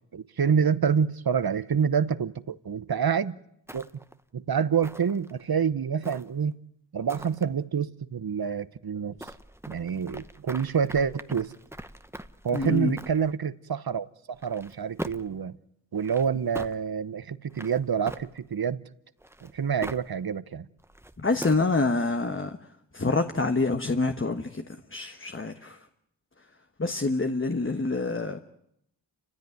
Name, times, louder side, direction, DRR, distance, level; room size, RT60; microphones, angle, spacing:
voice 1, 0.1-3.4 3.7-3.9 4.3-6.6 6.9-9.2 9.7-11.5 12.4-15.6 15.9-18.8 19.4-20.7, right 7 dB, 55° right, 1.0 m, -27 dB
sound 1, 3.7-4.2 4.8-5.4 6.0-6.5 7.1-7.4 9.2-13.3 14.3-15.4 16.0-16.8 17.5-18.6 19.2-20.1 20.8-21.7, right 1 dB, 5° right, 0.9 m, -42 dB
voice 2, 12.5-12.9 21.2-22.6 22.9-24.6 24.9-25.8 26.8-28.4, left 3 dB, 30° left, 1.2 m, -26 dB
30.0 x 15.5 x 9.5 m
wide cardioid pair, 75°, 44 cm